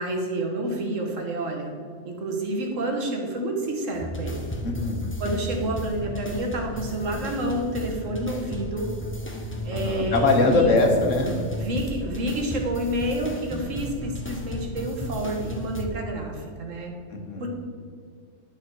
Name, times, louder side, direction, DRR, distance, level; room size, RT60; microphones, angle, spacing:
voice 1, 0.0-1.7 2.1-4.4 5.2-8.9 9.6-10.8 11.6-16.9 17.4-17.5, right 1 dB, 70° right, 2 dB, 1.8 m, -29 dB
sound 1, 3.9-15.8, equal, 10° left, 0.9 m, -34 dB
voice 2, 4.6-5.0 9.7-11.4 17.1-17.4, left 3 dB, 70° left, 3 dB, 1.7 m, -22 dB
11.0 x 6.6 x 4.7 m, 2.2 s
omnidirectional pair, 1.4 m